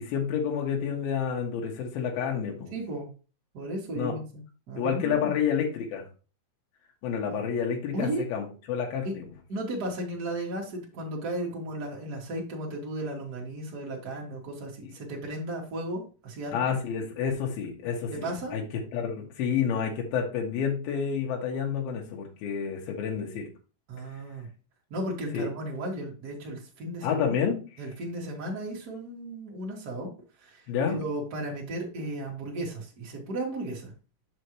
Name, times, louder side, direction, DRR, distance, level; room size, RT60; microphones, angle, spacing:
voice 1, 0.0-2.7 3.9-4.2 4.8-6.1 7.0-9.2 16.5-23.5 25.3-25.5 27.0-27.6 30.7-31.0, left 7 dB, 65° left, 0 dB, 3.1 m, -29 dB
voice 2, 2.7-3.1 3.5-4.4 4.7-5.3 7.3-7.4 7.9-8.2 9.0-9.1 9.5-16.6 18.1-18.6 23.9-24.5 24.9-27.5 27.8-30.1 30.4-33.9, right 1 dB, 60° right, -2 dB, 1.0 m, -35 dB
6.9 x 6.3 x 3.1 m, 0.34 s
omnidirectional pair, 5.1 m